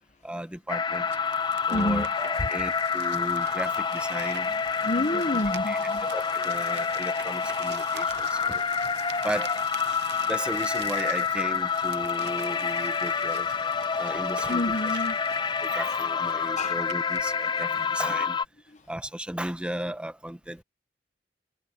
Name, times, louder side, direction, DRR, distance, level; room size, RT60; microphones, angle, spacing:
voice 1, 0.2-1.1 1.7-4.5 5.7-5.8 6.1-8.6 9.2-9.6 10.3-13.5 14.0-14.6 15.6-18.4 18.9-20.6, right 1 dB, 5° right, 1.1 m, -35 dB
sound 1, 0.7-18.4, left 6 dB, 25° left, 0.5 m, -28 dB
sound 2, 0.9-18.1, right 7 dB, 70° right, 0.8 m, -45 dB
voice 2, 1.7-2.1 2.4-2.5 4.4-6.1 14.5-15.2 16.6-16.8 17.7-18.3 18.7-18.9, left 1 dB, 45° left, 1.0 m, -30 dB
head